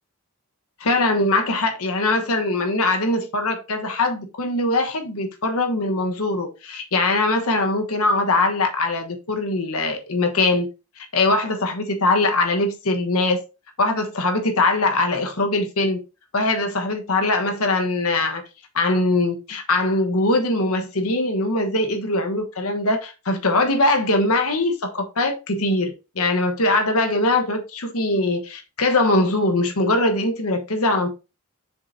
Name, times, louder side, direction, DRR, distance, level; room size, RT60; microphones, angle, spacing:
voice 1, 0.8-10.7 11.0-13.4 13.8-16.0 16.3-18.4 18.7-31.1, left 2 dB, 75° left, 1.2 m, -21 dB
6.7 x 5.3 x 2.7 m
head